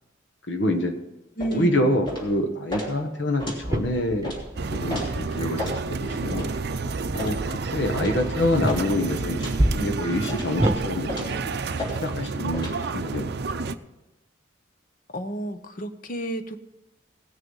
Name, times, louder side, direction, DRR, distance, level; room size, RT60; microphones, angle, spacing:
voice 1, 0.5-1.0 1.5-4.3 4.7-6.5 7.1-13.7, left 1 dB, 75° left, 5 dB, 1.2 m, -27 dB
voice 2, 1.4-1.9 15.1-16.6, right 1 dB, 45° left, 9 dB, 0.9 m, -31 dB
sound 1, 1.4-1.6 2.1-2.3 2.7-2.9 3.4-3.6 4.2-4.4 4.9-5.1 5.6-5.8 6.3-6.5 7.2-7.4 8.0-8.2 8.7-8.9 9.4-9.6 10.3-10.5 11.1-11.4 11.8-12.0 12.5-12.8, left 1 dB, 25° left, 3.3 m, -33 dB
sound 2, 3.6-10.8, right 1 dB, 20° right, 1.0 m, -30 dB
sound 3, 4.6-13.8, right 4 dB, 60° right, 0.5 m, -30 dB
17.5 x 6.6 x 5.5 m, 0.97 s
head